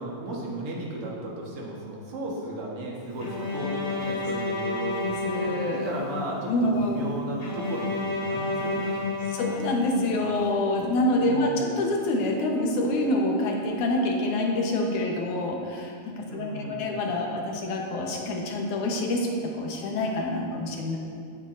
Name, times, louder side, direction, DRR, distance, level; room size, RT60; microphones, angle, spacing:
voice 1, 0.0-5.0 5.4-9.3 10.2-10.5 11.2-11.7 16.3-17.0, right 1 dB, 50° right, -3 dB, 2.3 m, -35 dB
Bowed string instrument, 3.2-6.4 7.4-10.3, left 2 dB, 35° left, 1.8 m, -30 dB
voice 2, 5.0-5.9 6.5-7.0 9.3-21.0, left 1 dB, 75° left, 0 dB, 2.6 m, -27 dB
16.5 x 8.8 x 2.7 m, 2.4 s
omnidirectional pair, 3.5 m